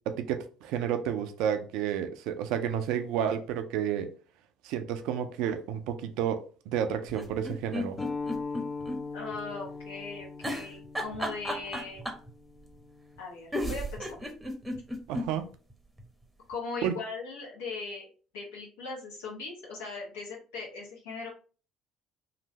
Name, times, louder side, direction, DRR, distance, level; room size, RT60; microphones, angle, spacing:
voice 1, 0.1-4.1 4.6-8.0 15.1-15.5 16.8-16.9, right 9 dB, 65° right, 0.4 m, -31 dB
sound 1, 7.1-9.0 9.3-9.4 10.4-12.3 13.2-13.3 13.5-15.3 15.7-15.8 16.0-16.1, left 1 dB, 10° right, 0.9 m, -33 dB
sound 2, 8.0-13.2, left 4 dB, 35° left, 0.7 m, -40 dB
voice 2, 9.1-12.0 13.2-14.3 16.5-21.3, left 4 dB, 70° left, 1.0 m, -39 dB
3.1 x 2.5 x 2.9 m
figure-of-eight pair, 50°, 0 cm